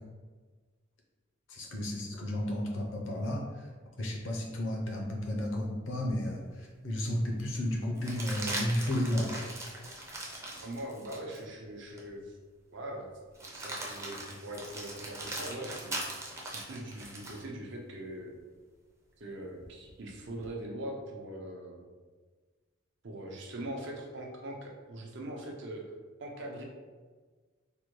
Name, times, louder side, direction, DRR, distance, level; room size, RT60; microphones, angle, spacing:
voice 1, 1.5-3.5 4.0-9.4, left 1 dB, 65° left, 0 dB, 0.6 m, -32 dB
sound 1, 6.4-6.5 8.0-11.4 12.0-12.1 13.3-17.4 19.6-20.5, right 1 dB, 15° right, 0.5 m, -40 dB
voice 2, 10.6-12.4 12.7-13.1 13.5-18.3 19.2-21.8 23.0-25.8 26.2-26.6, right 1 dB, 60° right, 0 dB, 0.6 m, -42 dB
3.5 x 2.2 x 3.1 m, 1.4 s
head